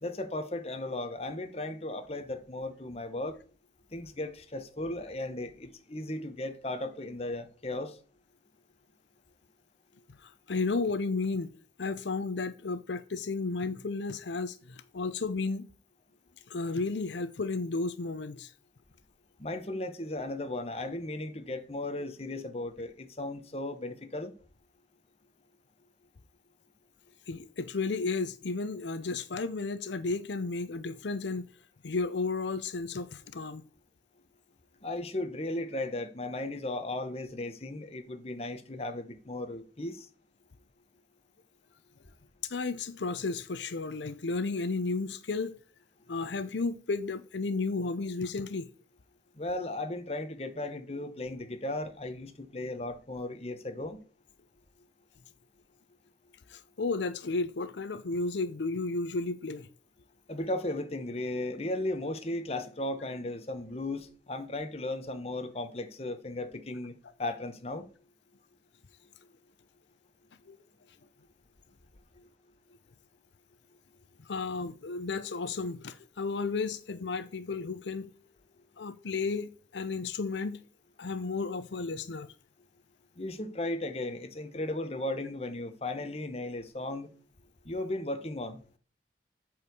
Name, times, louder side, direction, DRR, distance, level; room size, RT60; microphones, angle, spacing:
voice 1, 0.0-3.4 3.9-8.0 19.4-24.3 34.8-40.1 49.3-54.0 60.3-66.9 67.2-67.9 72.2-72.3 83.2-87.1 87.6-88.6, left 1 dB, 35° left, 1.1 m, -36 dB
voice 2, 10.2-11.5 11.8-15.7 16.5-18.5 27.3-31.5 31.8-33.6 42.5-45.6 46.1-48.7 56.5-59.7 70.5-70.6 74.2-78.1 78.8-80.6 81.0-82.3, left 3 dB, 85° left, 0.6 m, -33 dB
8.5 x 4.7 x 7.0 m
head